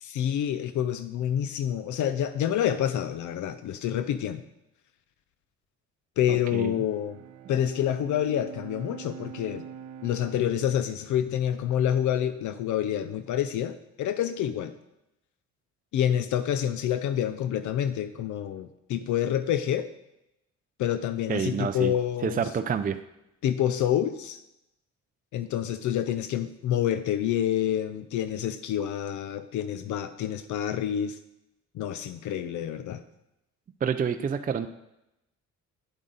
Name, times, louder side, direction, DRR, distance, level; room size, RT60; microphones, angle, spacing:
voice 1, 0.0-4.4 6.2-7.2 7.5-9.6 10.0-14.7 15.9-19.9 20.8-22.4 23.4-24.4 25.3-31.2 31.7-33.0, left 10 dB, 75° left, 11 dB, 0.6 m, -28 dB
voice 2, 6.3-6.8 21.3-21.9 22.2-23.0 33.8-34.7, right 7 dB, 30° right, 8 dB, 0.4 m, -28 dB
Bowed string instrument, 6.6-12.1, right 8 dB, 70° right, 0.7 m, -45 dB
9.2 x 7.3 x 3.9 m, 0.88 s
cardioid pair, 90°, 30 cm